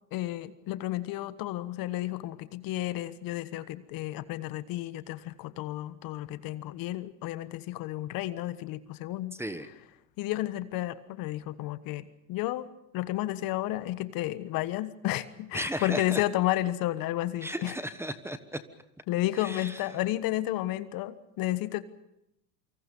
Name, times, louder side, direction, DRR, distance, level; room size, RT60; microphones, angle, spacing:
voice 1, 0.1-9.3 10.2-12.0 12.3-12.7 12.9-17.7 19.1-21.8, left 15 dB, 45° left, 14 dB, 1.3 m, -32 dB
voice 2, 9.3-9.7 15.5-16.2 17.4-18.6 19.3-19.8, right 1 dB, 5° right, 11 dB, 1.2 m, -35 dB
28.0 x 25.0 x 5.4 m, 0.82 s
hypercardioid pair, 105°, 48 cm